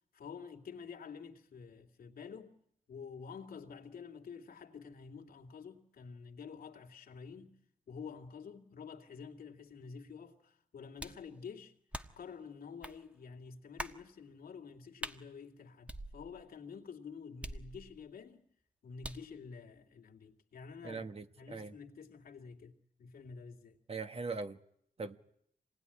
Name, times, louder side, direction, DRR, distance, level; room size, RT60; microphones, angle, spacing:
voice 1, 0.1-2.6 2.9-7.6 7.9-11.7 12.2-18.4 18.8-21.0 21.4-23.8, left 6 dB, 80° left, 2.6 m, -49 dB
sound 1, 11.0-11.3 11.9-12.3 12.8-13.0 13.8-14.0 15.0-15.2 15.9-16.5 17.4-18.1 19.0-19.3, right 1 dB, 10° right, 1.4 m, -44 dB
voice 2, 20.8-21.7 23.9-24.6 25.0-25.2, right 4 dB, 40° right, 1.5 m, -40 dB
26.5 x 19.5 x 10.0 m
cardioid pair, 90°, 15 cm